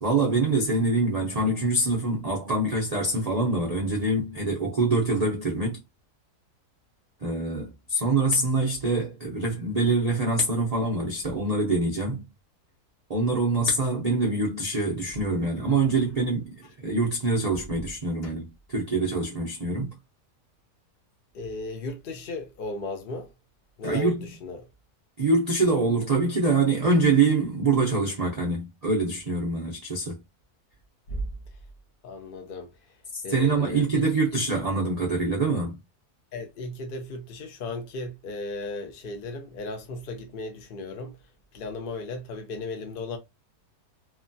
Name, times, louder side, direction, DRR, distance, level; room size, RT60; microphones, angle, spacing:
voice 1, 0.0-5.8 7.2-12.2 13.1-19.9 23.8-24.3 25.2-30.2 33.1-35.8, right 3 dB, 60° right, 0.4 m, -25 dB
voice 2, 21.3-23.3 23.8-24.7 31.1-31.6 32.0-33.0 33.2-34.2 36.3-43.2, left 2 dB, 65° left, 0.5 m, -36 dB
3.0 x 2.2 x 2.6 m
omnidirectional pair, 1.7 m